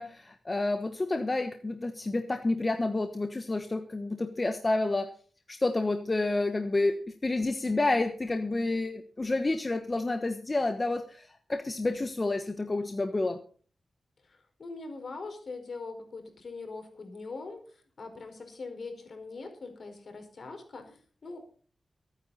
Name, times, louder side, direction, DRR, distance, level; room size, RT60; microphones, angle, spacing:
voice 1, 0.0-5.1 5.5-13.4, left 2 dB, 30° left, 7 dB, 1.3 m, -29 dB
voice 2, 14.2-21.4, left 3 dB, 60° left, 5 dB, 4.8 m, -42 dB
23.0 x 9.6 x 4.1 m, 0.40 s
wide cardioid pair, 95°, 0 cm